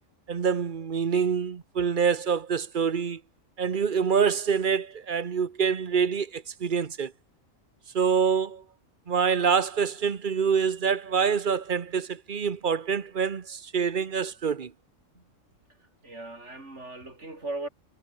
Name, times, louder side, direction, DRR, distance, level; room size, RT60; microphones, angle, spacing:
voice 1, 0.3-3.2 3.6-7.1 7.9-8.6 9.1-14.7, right 6 dB, 40° right, 1.1 m, -26 dB
voice 2, 16.0-17.7, right 2 dB, 60° right, 5.8 m, -37 dB
omnidirectional pair, 1.3 m